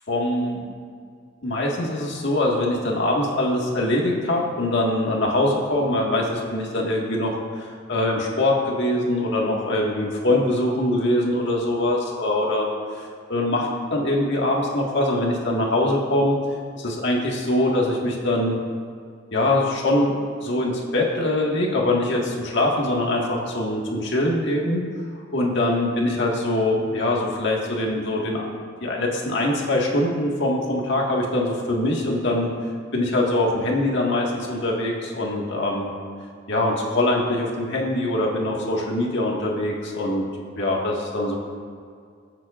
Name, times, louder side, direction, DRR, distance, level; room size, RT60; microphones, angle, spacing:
voice 1, 0.1-0.7 1.4-12.7 13.0-16.4 16.8-18.6 19.3-24.8 25.3-28.5 28.8-32.5 32.9-35.9 36.5-40.2 40.6-41.4, left 1 dB, 65° left, -2 dB, 1.7 m, -23 dB
21.5 x 7.6 x 2.5 m, 2.1 s
head